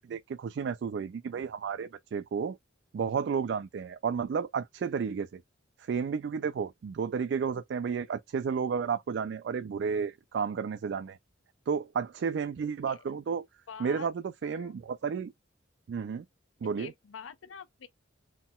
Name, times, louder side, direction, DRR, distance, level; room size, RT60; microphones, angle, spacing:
voice 1, 0.0-2.6 2.9-5.4 5.8-11.2 11.7-13.5 13.8-14.1 14.4-15.3 15.9-16.2 16.6-16.9, right 6 dB, 60° right, 0.3 m, -32 dB
voice 2, 13.7-14.1 14.4-14.7 16.6-17.9, left 6 dB, 85° left, 0.5 m, -46 dB
4.2 x 3.7 x 2.3 m
head